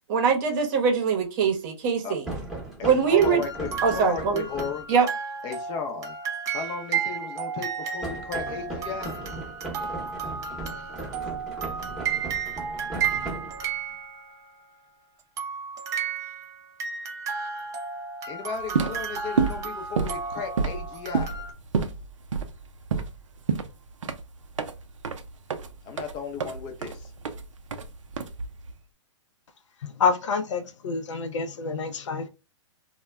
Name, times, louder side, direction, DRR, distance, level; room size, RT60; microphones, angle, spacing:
voice 1, 0.1-2.2 2.8-3.4 3.8-4.4 4.9-5.1, right 6 dB, 40° right, 0.8 m, -22 dB
sound 1, 2.3-4.9 8.0-13.9, right 2 dB, ahead, 0.8 m, -37 dB
voice 2, 2.8-4.8 5.4-6.1 6.5-9.1 18.3-21.3 25.9-27.0, left 6 dB, 30° left, 0.6 m, -35 dB
sound 2, 3.1-14.6 15.4-21.5, right 6 dB, 20° right, 0.5 m, -33 dB
sound 3, 18.6-28.8, right 5 dB, 85° right, 0.5 m, -30 dB
voice 3, 30.0-32.3, left 5 dB, 75° left, 0.5 m, -27 dB
2.2 x 2.1 x 3.4 m
hypercardioid pair, 125°, 16 cm